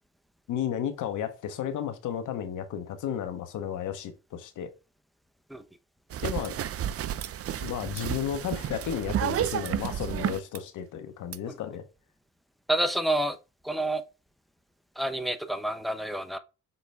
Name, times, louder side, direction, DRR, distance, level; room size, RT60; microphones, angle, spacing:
voice 1, 0.5-4.7 6.2-6.5 7.6-11.8, left 9 dB, 80° left, 1.3 m, -33 dB
sound 1, 6.1-10.6 11.3-11.4, right 10 dB, 50° right, 0.6 m, -31 dB
voice 2, 12.7-13.4 13.6-14.0 15.0-16.4, right 1 dB, ahead, 0.9 m, -28 dB
7.3 x 4.0 x 3.4 m
cardioid pair, 90°, 30 cm